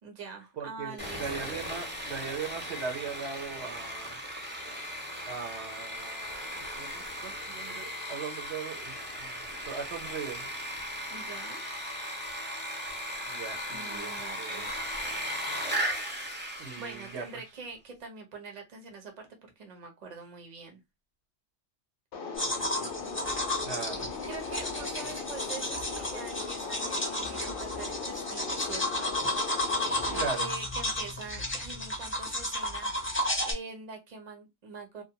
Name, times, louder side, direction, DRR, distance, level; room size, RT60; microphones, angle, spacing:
voice 1, 0.0-1.5 11.1-11.6 13.7-14.8 16.8-19.3 19.6-20.8 24.3-29.1 30.0-35.0, right 4 dB, 40° right, 0.7 m, -44 dB
voice 2, 0.6-4.2 5.3-10.5 13.3-14.7 15.5-15.6 16.6-17.2 23.6-24.1 30.1-30.5, right 5 dB, 70° right, 0.9 m, -39 dB
Sawing, 1.0-17.4, equal, 10° right, 0.8 m, -37 dB
sound 1, 22.1-30.3, left 4 dB, 60° left, 0.6 m, -38 dB
sound 2, 22.4-33.5, left 1 dB, 20° left, 0.4 m, -33 dB
2.5 x 2.2 x 2.7 m
omnidirectional pair, 1.2 m